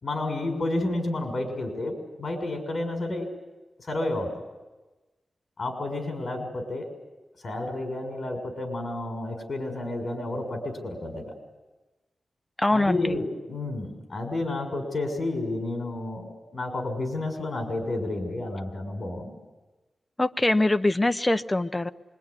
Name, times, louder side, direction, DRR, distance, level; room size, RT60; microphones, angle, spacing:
voice 1, 0.0-3.3 3.8-4.3 5.6-6.9 7.4-11.3 12.7-19.3, left 2 dB, 50° left, 4 dB, 6.4 m, -31 dB
voice 2, 12.6-13.2 20.2-21.9, left 2 dB, 20° left, 11 dB, 0.9 m, -23 dB
26.0 x 22.5 x 9.9 m, 1.2 s
wide cardioid pair, 80°, 0 cm